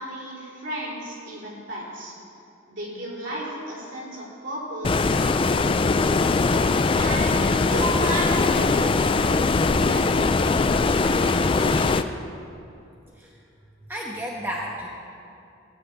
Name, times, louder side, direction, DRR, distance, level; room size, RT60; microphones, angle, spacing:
voice 1, 0.0-2.1 2.7-6.0 6.9-12.0, equal, 60° right, -5 dB, 3.9 m, -34 dB
Stream, 4.8-12.0, left 3 dB, 25° left, 0.3 m, -21 dB
voice 2, 13.9-14.9, equal, 10° right, -3 dB, 1.0 m, -32 dB
16.5 x 5.8 x 8.5 m, 2.6 s
head